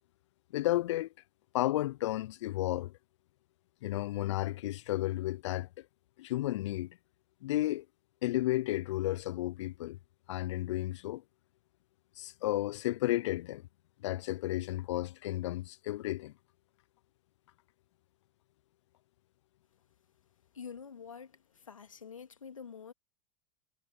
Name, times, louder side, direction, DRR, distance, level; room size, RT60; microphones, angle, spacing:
voice 1, 0.5-1.1 1.5-2.9 3.8-5.9 6.2-7.0 7.4-7.9 8.2-10.0 10.3-11.2 12.2-13.7 14.0-16.3, left 16 dB, 65° left, 0.5 m, -33 dB
voice 2, 20.5-22.9, left 6 dB, 85° left, 2.6 m, -47 dB
figure-of-eight pair, 90°, 17 cm